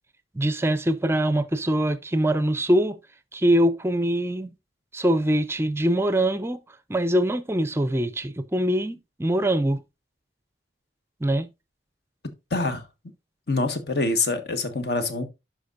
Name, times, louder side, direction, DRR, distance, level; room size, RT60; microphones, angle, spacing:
voice 1, 0.3-3.0 3.3-4.5 4.9-6.6 6.9-9.8 11.2-11.5, right 1 dB, 15° right, 0.4 m, -23 dB
voice 2, 12.5-12.8 13.5-15.2, left 3 dB, 60° left, 1.3 m, -25 dB
11.5 x 5.1 x 2.5 m
head